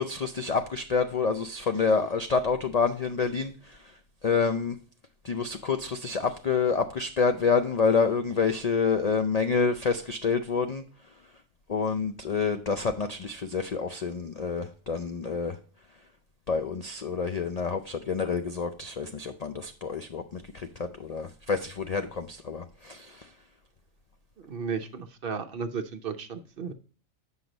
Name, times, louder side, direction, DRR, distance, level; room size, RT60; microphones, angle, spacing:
voice 1, 0.0-3.8 4.2-4.7 5.2-10.8 11.7-15.6 16.5-23.3, left 5 dB, 80° left, 7 dB, 0.3 m, -28 dB
voice 2, 24.4-26.7, right 6 dB, 55° right, 9 dB, 0.7 m, -34 dB
7.8 x 5.6 x 3.9 m, 0.40 s
omnidirectional pair, 1.4 m